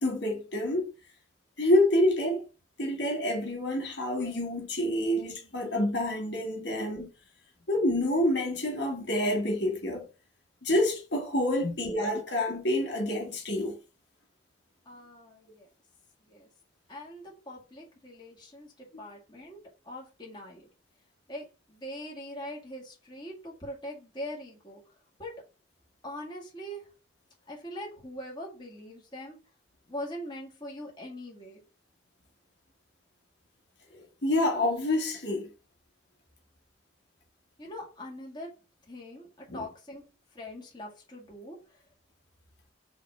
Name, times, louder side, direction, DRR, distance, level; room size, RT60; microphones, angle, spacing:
voice 1, 0.0-0.9 1.6-2.5 2.8-7.1 7.7-10.1 10.6-13.8 33.9-35.5 39.5-39.6, left 1 dB, 65° left, 1.5 m, -27 dB
voice 2, 14.9-15.7 16.2-16.5 16.9-20.7 21.3-24.9 25.2-25.3 26.0-26.9 27.5-29.4 29.9-31.6 37.6-38.5 38.9-40.0 40.3-41.8, left 1 dB, 25° left, 2.1 m, -42 dB
5.7 x 3.1 x 5.6 m
head